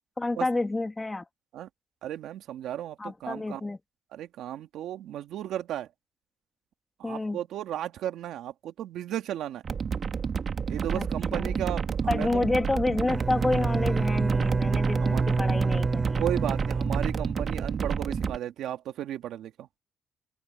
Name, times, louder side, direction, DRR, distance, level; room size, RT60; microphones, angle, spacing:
voice 1, 0.2-1.2 3.0-3.8 7.0-7.4 10.9-11.6 12.1-16.2, left 2 dB, 20° left, 2.6 m, -29 dB
voice 2, 2.0-3.6 4.1-5.9 7.0-9.6 10.7-12.4 15.0-15.2 16.2-19.7, right 11 dB, 80° right, 2.1 m, -34 dB
sound 1, 9.6-18.4, right 6 dB, 50° right, 1.8 m, -30 dB
Bowed string instrument, 13.1-17.8, right 3 dB, 30° right, 2.9 m, -28 dB
open air
cardioid pair, 90°, 0 cm